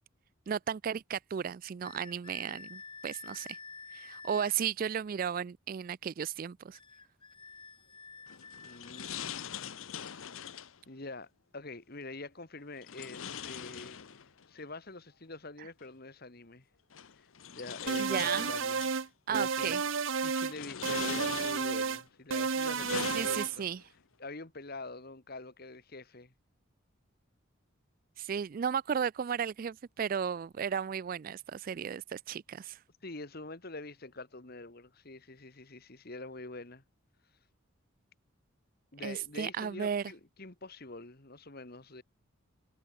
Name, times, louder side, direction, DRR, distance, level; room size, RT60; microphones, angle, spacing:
voice 1, 0.5-3.6 3.9-6.8 18.0-18.6 19.3-19.8 23.1-23.8 28.2-32.8 39.0-40.0, right 7 dB, 40° right, 0.3 m, -34 dB
sound 1, 1.8-4.6 6.7-9.3, left 4 dB, 25° left, 6.0 m, -49 dB
sound 2, 8.3-10.8 12.8-14.5 15.8-15.9 16.9-19.0 19.6-20.0 20.4-21.9 22.4-23.8, left 8 dB, 75° left, 0.8 m, -42 dB
voice 2, 8.6-9.9 10.9-14.0 14.5-16.7 17.2-19.8 20.1-23.7 24.2-26.3 33.0-36.8 38.9-42.0, left 2 dB, 45° left, 1.8 m, -46 dB
sound 3, 17.9-19.1 19.3-20.5 20.8-22.0 22.3-23.5, right 5 dB, 65° right, 0.9 m, -32 dB
head